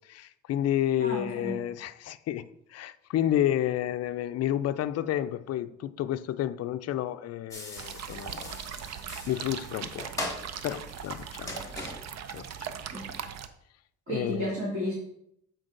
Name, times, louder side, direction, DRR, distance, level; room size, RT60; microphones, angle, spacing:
voice 1, 0.0-8.6 9.3-10.1 10.6-11.5 12.3-12.5 14.1-14.6, left 12 dB, 55° left, 0.4 m, -30 dB
voice 2, 1.0-1.6 12.9-13.0 14.1-14.9, equal, 40° right, 2.7 m, -32 dB
sound 1, 7.5-13.2, left 1 dB, 10° left, 1.7 m, -41 dB
sound 2, 7.8-13.5, right 8 dB, 60° right, 0.6 m, -40 dB
7.8 x 4.5 x 3.8 m
cardioid pair, 90°, 30 cm